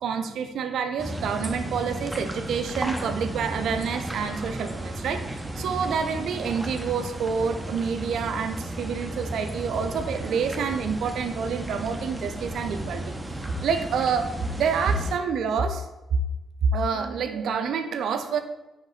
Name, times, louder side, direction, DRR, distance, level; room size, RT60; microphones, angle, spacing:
voice 1, 0.0-13.0 13.6-14.3 14.6-15.8 16.6-18.4, right 6 dB, 70° right, 7 dB, 0.6 m, -27 dB
sound 1, 1.0-15.1, right 1 dB, 15° right, 1.1 m, -34 dB
6.2 x 5.3 x 4.0 m, 1.0 s
hypercardioid pair, 45°, 0 cm